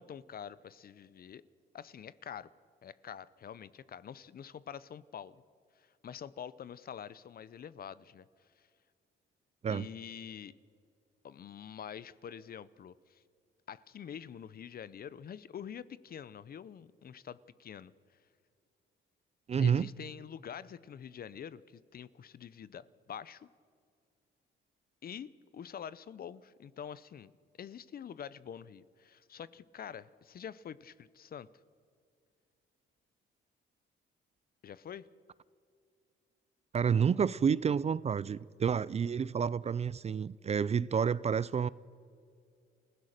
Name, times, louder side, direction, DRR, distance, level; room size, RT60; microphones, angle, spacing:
voice 1, 0.0-1.4 1.7-2.5 2.8-5.4 5.8-8.2 8.6-8.7 9.7-10.5 11.2-13.2 13.7-17.9 19.6-23.5 25.0-27.3 27.6-31.5 34.6-35.1, left 8 dB, 50° left, 0.7 m, -46 dB
voice 2, 19.5-19.9 36.7-41.7, right 7 dB, 35° right, 0.4 m, -29 dB
29.0 x 16.0 x 6.6 m
cardioid pair, 90°, 20 cm